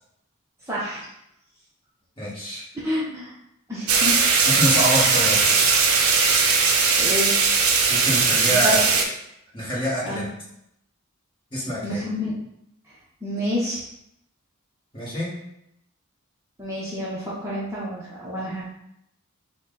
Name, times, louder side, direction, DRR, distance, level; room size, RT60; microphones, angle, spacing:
voice 1, 0.7-1.1 2.8-3.3 3.7-4.4 7.0-7.3 8.5-9.0 10.0-10.3 11.8-12.3 13.2-13.8 16.6-18.6, equal, 15° right, -8 dB, 0.8 m, -29 dB
voice 2, 2.2-2.6 4.4-5.6 7.9-8.8 9.5-10.3 11.5-12.0 14.9-15.3, equal, 25° left, -7 dB, 1.5 m, -25 dB
sound 1, 3.9-9.0, right 5 dB, 75° right, 0.6 m, -19 dB
5.9 x 2.2 x 3.9 m, 0.79 s
head